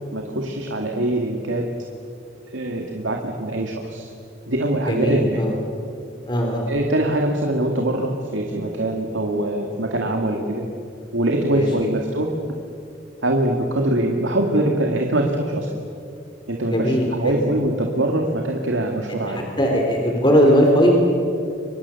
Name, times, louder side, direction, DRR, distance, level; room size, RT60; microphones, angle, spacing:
voice 1, 0.1-1.7 2.5-4.1 4.5-5.4 6.7-10.7 11.1-12.3 13.2-15.7 16.5-19.5, right 1 dB, 80° right, 1 dB, 2.2 m, -23 dB
voice 2, 4.9-5.5 6.3-6.7 11.5-11.7 16.7-17.4 19.3-21.0, equal, 25° left, 1 dB, 3.3 m, -19 dB
30.0 x 24.5 x 7.1 m, 2.5 s
head